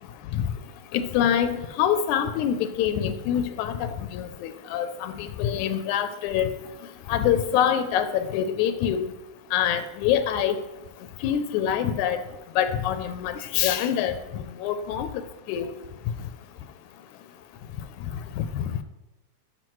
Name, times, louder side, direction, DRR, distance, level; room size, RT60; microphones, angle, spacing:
voice 1, 0.9-6.5 7.1-9.1 9.5-10.6 11.2-12.2 12.6-15.1 15.5-15.8 18.4-18.7, left 9 dB, 85° left, 10 dB, 2.0 m, -25 dB
12.0 x 6.2 x 3.1 m, 0.96 s
omnidirectional pair, 3.4 m